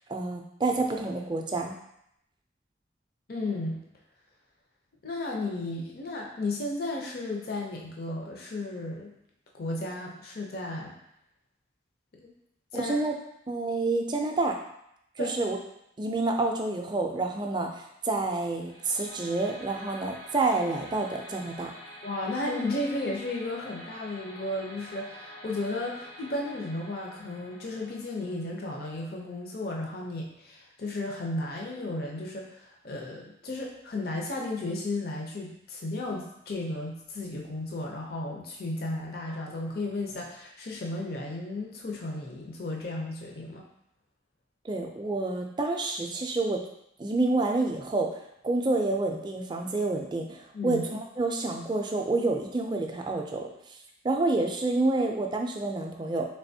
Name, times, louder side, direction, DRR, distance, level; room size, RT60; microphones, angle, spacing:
voice 1, 0.1-1.8 12.8-13.1 13.5-14.6 15.2-15.6 16.0-21.7 44.6-46.6 47.0-53.5 54.0-56.3, right 2 dB, 25° right, 2 dB, 0.4 m, -28 dB
voice 2, 3.3-3.8 5.0-9.1 9.5-10.9 12.2-12.3 12.7-12.9 15.2-15.3 22.0-43.7 50.5-50.8, left 2 dB, 55° left, -1 dB, 0.6 m, -34 dB
sound 1, 18.6-29.6, equal, 75° left, 1.3 m, -47 dB
3.7 x 3.3 x 2.7 m, 0.77 s
head